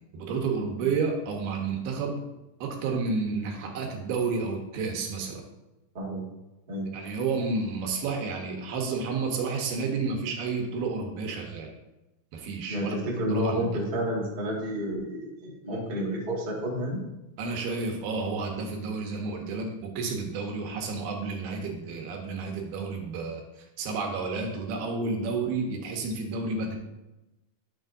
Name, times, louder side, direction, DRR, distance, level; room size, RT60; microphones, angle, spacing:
voice 1, 0.1-2.2 2.6-5.4 6.9-11.7 12.3-13.0 13.3-13.7 17.4-23.4 23.8-26.8, right 4 dB, 80° right, 2 dB, 3.1 m, -31 dB
voice 2, 5.9-6.3 6.7-7.0 12.7-17.0, equal, 25° right, -4 dB, 1.0 m, -30 dB
11.5 x 6.9 x 2.7 m, 0.99 s
omnidirectional pair, 4.4 m